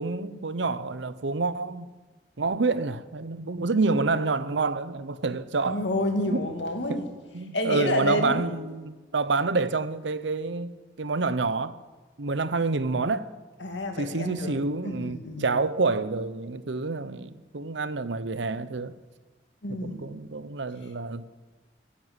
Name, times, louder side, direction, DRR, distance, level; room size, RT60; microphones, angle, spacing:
voice 1, 0.0-1.9 2.4-5.8 6.2-6.4 6.9-7.0 7.3-11.8 12.2-13.3 14.0-18.9 19.7-21.2, right 3 dB, 85° right, 0.8 m, -28 dB
voice 2, 5.6-7.1 7.5-8.7 13.6-14.5 14.8-15.5 19.6-20.2, left 1 dB, 80° left, 2.4 m, -29 dB
15.5 x 10.0 x 8.1 m
head